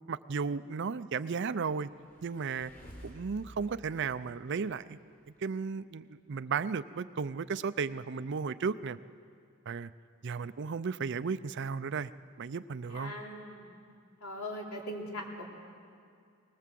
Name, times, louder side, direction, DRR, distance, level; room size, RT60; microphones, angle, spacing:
voice 1, 0.1-1.9 2.2-2.7 3.0-5.0 5.4-9.0 9.7-9.9 10.2-12.1 12.4-13.1, right 5 dB, 55° right, 15 dB, 0.5 m, -34 dB
sound 1, 1.9-5.4, equal, 40° left, 4.6 m, -53 dB
voice 2, 12.9-13.8 14.2-15.4, equal, 80° left, -1 dB, 3.4 m, -40 dB
21.5 x 20.0 x 7.6 m, 2.3 s
head